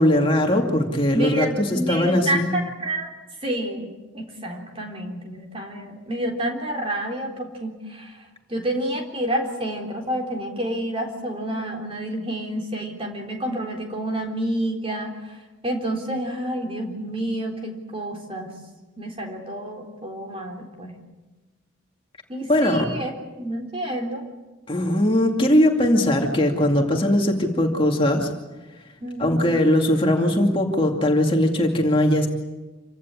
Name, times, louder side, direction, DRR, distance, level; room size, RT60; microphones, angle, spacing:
voice 1, 0.0-2.5 22.5-22.9 24.7-28.3 29.2-32.3, left 1 dB, 25° left, 1 dB, 2.5 m, -20 dB
voice 2, 1.1-3.1 3.4-15.4 15.6-18.5 19.0-21.0 22.3-23.1 23.4-24.2 29.0-29.5, right 1 dB, 25° right, 2 dB, 3.8 m, -29 dB
27.5 x 17.0 x 9.8 m, 1.2 s
head